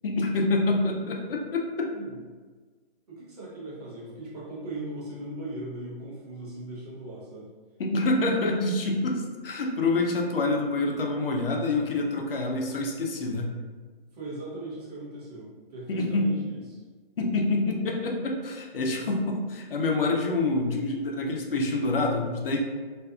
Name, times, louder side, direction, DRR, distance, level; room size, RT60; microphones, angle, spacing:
voice 1, 0.0-1.9 7.8-13.5 15.9-16.3 17.2-22.6, left 2 dB, 65° left, 0 dB, 0.6 m, -27 dB
voice 2, 3.1-7.5 14.1-16.8, right 1 dB, 40° right, -6 dB, 0.8 m, -39 dB
2.5 x 2.2 x 2.4 m, 1.4 s
hypercardioid pair, 155°, 30 cm